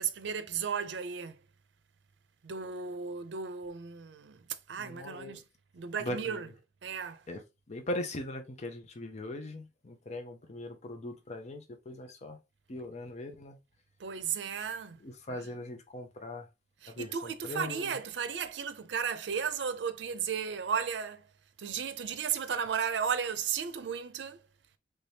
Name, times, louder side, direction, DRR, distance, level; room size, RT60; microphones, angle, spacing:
voice 1, 0.0-1.4 2.4-4.4 4.7-5.4 5.7-6.5 6.8-7.2 14.0-15.0 15.3-15.5 16.8-21.3 21.6-24.4, right 7 dB, 85° right, 0.5 m, -34 dB
voice 2, 4.8-5.4 6.0-6.5 7.3-7.4 7.7-12.4 12.7-13.6 15.0-16.5 16.9-18.0, left 1 dB, 40° left, 0.6 m, -40 dB
3.3 x 2.7 x 3.3 m
head